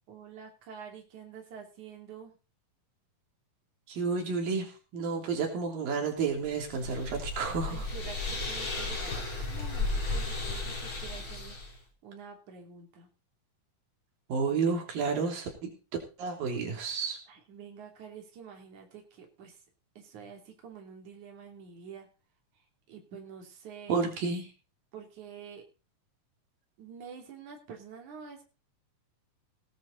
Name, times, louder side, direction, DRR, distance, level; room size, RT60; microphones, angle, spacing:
voice 1, 0.1-2.4 7.5-13.1 16.7-16.8 17.3-19.6 20.0-22.1 22.9-24.0 24.9-25.6 26.8-28.4, right 6 dB, 60° right, 2 dB, 4.6 m, -48 dB
voice 2, 3.9-7.9 14.3-15.7 16.2-17.2 23.9-24.5, right 5 dB, 90° right, 2 dB, 4.9 m, -31 dB
sound 1, 6.4-11.7, left 2 dB, 35° left, 4.9 m, -34 dB
18.5 x 10.5 x 4.1 m, 0.33 s
omnidirectional pair, 3.9 m